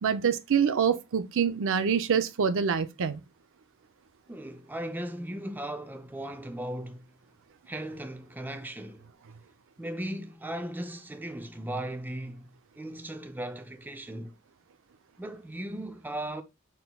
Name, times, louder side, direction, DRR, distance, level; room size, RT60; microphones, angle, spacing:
voice 1, 0.0-3.2, right 7 dB, 60° right, 0.5 m, -26 dB
voice 2, 4.3-7.1 7.7-9.1 9.8-14.3 15.2-16.4, right 1 dB, 10° right, 0.5 m, -37 dB
5.4 x 4.3 x 2.2 m
head